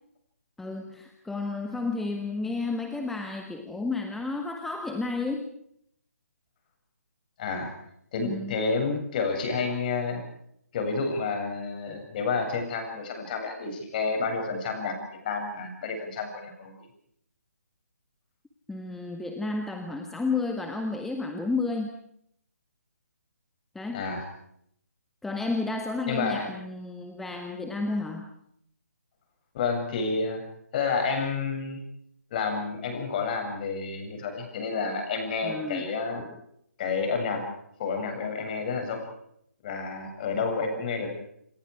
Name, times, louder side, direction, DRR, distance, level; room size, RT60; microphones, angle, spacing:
voice 1, 0.6-5.5 8.2-8.6 18.7-21.9 23.7-24.0 25.2-28.3 35.4-35.9 36.2-36.4, left 3 dB, 5° left, 3 dB, 1.6 m, -31 dB
voice 2, 7.4-7.7 8.1-10.2 10.7-15.0 15.2-16.8 23.9-24.2 26.1-26.5 29.5-30.4 30.7-31.8 32.3-36.2 36.8-37.5 37.8-39.1 39.6-41.1, left 4 dB, 35° left, 5 dB, 7.6 m, -30 dB
28.5 x 26.5 x 4.9 m, 0.71 s
figure-of-eight pair, 150°, 9 cm